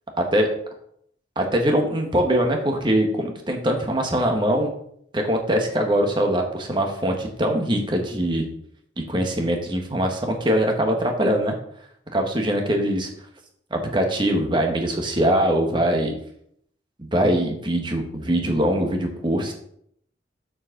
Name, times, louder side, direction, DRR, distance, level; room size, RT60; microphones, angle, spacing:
voice 1, 1.4-4.7 5.1-8.4 9.1-11.5 12.1-13.1 13.7-16.1 17.0-19.6, right 1 dB, 25° right, 3 dB, 1.3 m, -22 dB
7.1 x 4.8 x 6.5 m, 0.69 s
head